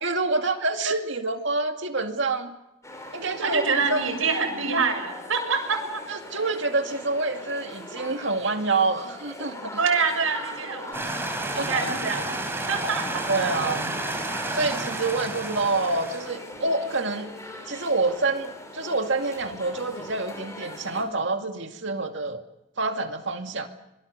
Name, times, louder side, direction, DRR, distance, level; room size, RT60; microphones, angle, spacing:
voice 1, 0.0-2.6 3.1-4.0 6.1-9.8 11.5-11.9 13.3-14.0 14.5-17.3 17.7-22.4 22.8-23.7, right 3 dB, 60° right, 5 dB, 2.4 m, -27 dB
sound 1, 2.8-21.0, left 1 dB, 15° left, 4.5 m, -41 dB
voice 2, 3.4-6.0 9.8-13.2 14.0-14.1, right 4 dB, 75° right, 2 dB, 6.9 m, -26 dB
sound 2, 10.9-16.3, right 2 dB, 10° right, 3.4 m, -31 dB
25.5 x 23.5 x 6.8 m, 0.91 s
head